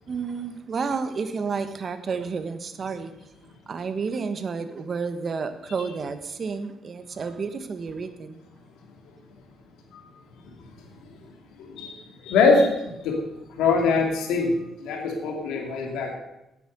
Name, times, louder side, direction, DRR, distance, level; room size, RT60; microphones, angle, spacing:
voice 1, 0.1-3.1 3.7-8.4, right 5 dB, 45° right, 10 dB, 1.2 m, -31 dB
voice 2, 11.6-13.2 13.6-14.5 14.8-16.1, left 4 dB, 90° left, 1 dB, 2.5 m, -23 dB
9.3 x 8.6 x 7.9 m, 0.89 s
cardioid pair, 90°, 0 cm